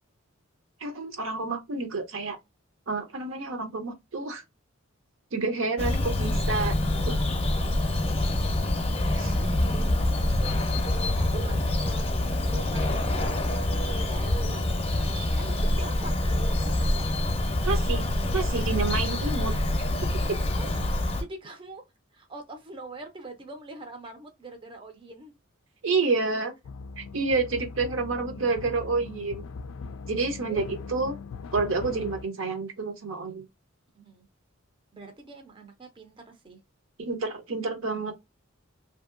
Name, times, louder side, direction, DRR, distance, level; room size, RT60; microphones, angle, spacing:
voice 1, 0.8-2.4 2.9-4.4 5.3-6.8 7.0-7.1 9.2-9.4 17.6-18.0 18.3-19.5 20.3-20.4 25.8-26.5 27.0-29.4 30.1-31.1 31.5-33.4 37.0-38.1, right 3 dB, 70° right, 0.7 m, -29 dB
Bird vocalization bird call bird song, 5.8-21.2, left 1 dB, 30° left, 0.6 m, -26 dB
voice 2, 9.3-14.7 14.9-17.0 20.6-21.8 22.1-25.3 28.9-29.0 30.2-30.6 33.9-34.3 34.9-36.6, right 3 dB, 25° right, 0.5 m, -44 dB
sound 1, 26.6-32.2, left 4 dB, 70° left, 0.3 m, -40 dB
2.7 x 2.6 x 2.5 m
head